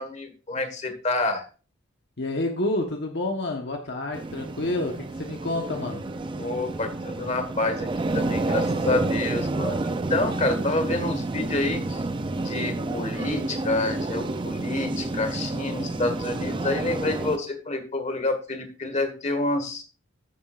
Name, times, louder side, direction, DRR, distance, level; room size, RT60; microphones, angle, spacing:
voice 1, 0.0-1.4 6.4-7.9 8.1-12.0 12.4-19.8, left 2 dB, 30° left, 6 dB, 1.5 m, -28 dB
voice 2, 2.2-6.0, left 2 dB, 55° left, 2 dB, 1.2 m, -29 dB
sound 1, 4.1-17.4, right 2 dB, 20° right, 0.4 m, -29 dB
13.5 x 7.2 x 2.5 m, 0.36 s
head